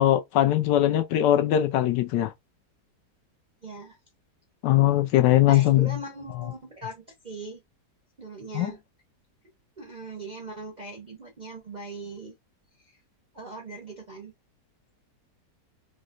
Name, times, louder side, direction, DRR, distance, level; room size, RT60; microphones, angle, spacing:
voice 1, 0.0-2.3 4.6-6.0 8.5-8.7, left 13 dB, 80° left, 1.2 m, -21 dB
voice 2, 3.6-4.0 5.5-7.6 8.2-8.8 9.8-12.3 13.3-14.3, right 2 dB, 55° right, 0.5 m, -40 dB
3.9 x 2.1 x 2.4 m
omnidirectional pair, 1.9 m